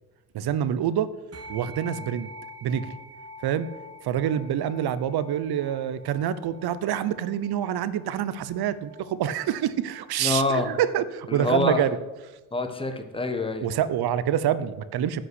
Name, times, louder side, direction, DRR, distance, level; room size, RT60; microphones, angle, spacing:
voice 1, 0.3-1.1 1.5-2.3 2.6-2.9 3.4-3.7 4.0-12.0 13.6-15.2, right 10 dB, 55° right, 15 dB, 0.8 m, -26 dB
sound 1, 1.3-11.0, left 1 dB, 35° right, 1.5 m, -47 dB
voice 2, 10.2-10.7 11.3-11.8 12.5-13.7, left 2 dB, 10° left, 6 dB, 1.3 m, -26 dB
9.8 x 5.6 x 8.2 m, 1.1 s
cardioid pair, 95°, 44 cm